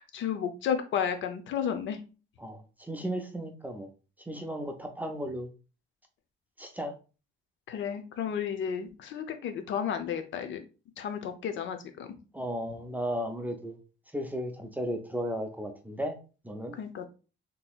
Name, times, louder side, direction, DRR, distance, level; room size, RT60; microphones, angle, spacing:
voice 1, 0.1-2.0 7.7-10.6 11.0-12.1 16.8-17.1, left 8 dB, 70° left, 8 dB, 0.6 m, -32 dB
voice 2, 2.4-3.9 4.3-5.5 6.6-6.9 12.3-13.8 14.1-16.2 16.4-16.8, equal, 10° right, 4 dB, 0.4 m, -35 dB
3.8 x 2.8 x 2.3 m, 0.34 s
cardioid pair, 155°, 20 cm